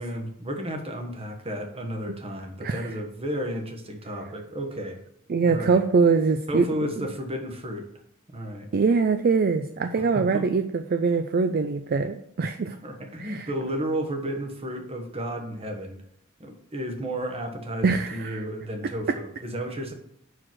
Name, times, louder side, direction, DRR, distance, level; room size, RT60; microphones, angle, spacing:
voice 1, 0.0-5.0 5.4-5.8 6.5-7.9 8.3-8.7 10.0-10.5 12.8-16.0 16.4-19.9, equal, 25° right, 3 dB, 1.2 m, -32 dB
voice 2, 5.3-6.7 8.7-12.8 13.2-13.5 17.8-18.4, right 4 dB, 45° right, 8 dB, 0.4 m, -23 dB
6.0 x 4.8 x 6.2 m, 0.72 s
head